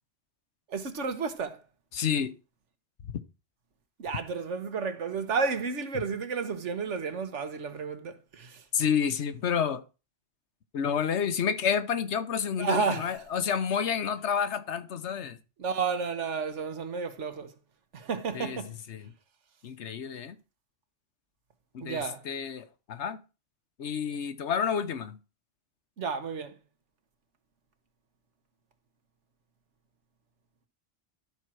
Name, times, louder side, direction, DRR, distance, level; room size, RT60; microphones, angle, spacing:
voice 1, 0.7-1.6 4.0-8.6 12.6-13.2 15.6-17.5 17.9-18.8 21.8-22.2 26.0-26.6, right 5 dB, 85° right, 1.5 m, -32 dB
voice 2, 1.9-2.3 8.7-9.8 10.7-15.4 18.3-18.6 18.9-19.1 19.6-20.4 21.7-23.2 23.8-25.2, left 7 dB, 75° left, 1.2 m, -29 dB
12.5 x 4.5 x 6.2 m
omnidirectional pair, 1.2 m